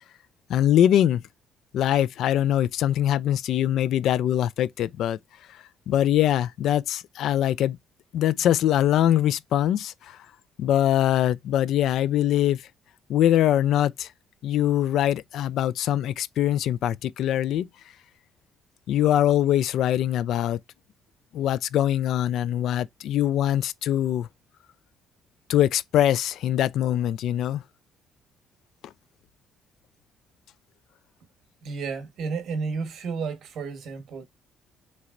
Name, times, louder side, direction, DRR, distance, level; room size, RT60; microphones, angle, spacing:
voice 1, 0.5-1.2 1.7-5.2 5.5-7.8 8.1-10.2 10.6-12.6 13.1-14.1 14.4-17.7 18.9-20.6 21.3-24.3 25.5-27.6, left 11 dB, 70° left, 0.4 m, -23 dB
voice 2, 31.6-34.2, right 5 dB, 60° right, 1.4 m, -32 dB
5.8 x 3.1 x 2.5 m
cardioid pair, 125°, 0 cm